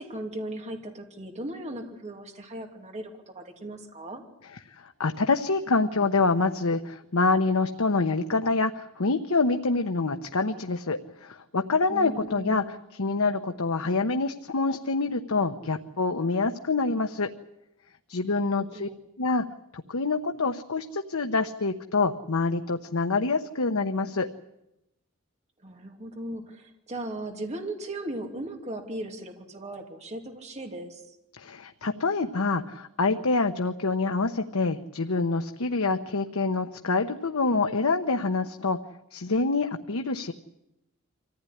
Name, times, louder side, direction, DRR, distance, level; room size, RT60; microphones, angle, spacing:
voice 1, 0.0-4.2 11.9-12.8 18.4-18.9 25.6-31.2, right 1 dB, 35° right, 3 dB, 2.9 m, -37 dB
voice 2, 4.8-17.3 18.1-18.9 19.2-19.4 19.7-24.3 31.4-38.8 39.1-40.3, left 3 dB, 85° left, 6 dB, 1.0 m, -26 dB
25.0 x 15.5 x 10.0 m, 0.89 s
head